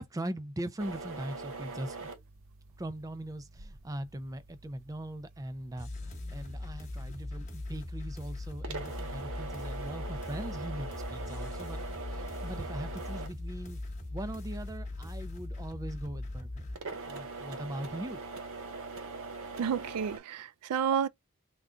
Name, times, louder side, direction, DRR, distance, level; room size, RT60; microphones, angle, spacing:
voice 1, 0.0-2.1 2.8-11.8 12.1-13.8 14.1-16.7 17.1-18.2, right 1 dB, 15° right, 0.4 m, -40 dB
sound 1, 0.8-20.2, right 3 dB, 60° right, 0.7 m, -44 dB
sound 2, 5.8-16.7, left 2 dB, 35° left, 1.0 m, -40 dB
voice 2, 19.6-21.1, right 8 dB, 85° right, 0.3 m, -30 dB
3.6 x 2.3 x 3.7 m
head